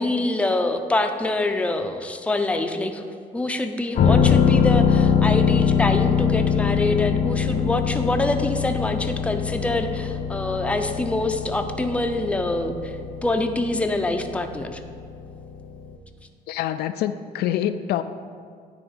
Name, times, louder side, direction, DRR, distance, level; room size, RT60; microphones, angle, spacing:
voice 1, 0.0-3.0 3.3-13.0 13.2-14.8, left 2 dB, 5° left, 6 dB, 0.5 m, -25 dB
sound 1, 4.0-15.5 15.8-15.9, left 7 dB, 50° left, 0.8 m, -22 dB
voice 2, 16.5-18.0, left 11 dB, 70° left, 10 dB, 0.4 m, -25 dB
10.0 x 3.5 x 6.5 m, 2.1 s
cardioid pair, 110°, 17 cm